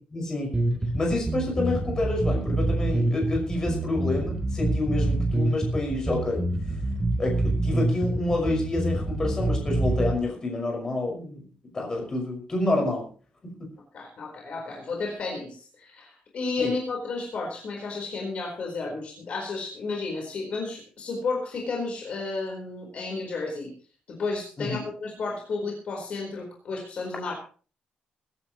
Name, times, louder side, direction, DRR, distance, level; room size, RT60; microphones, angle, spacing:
voice 1, 0.1-0.5 0.9-6.4 7.2-11.5 11.7-13.1 13.4-13.7 16.6-16.7 24.6-24.9, left 2 dB, 20° left, 0 dB, 5.9 m, -28 dB
sound 1, 0.5-10.1, right 2 dB, 10° right, 3.5 m, -26 dB
voice 2, 13.9-23.7 24.1-27.4, left 3 dB, 45° left, 0 dB, 4.4 m, -32 dB
22.5 x 12.0 x 3.1 m, 0.40 s
wide cardioid pair, 180°, 3 cm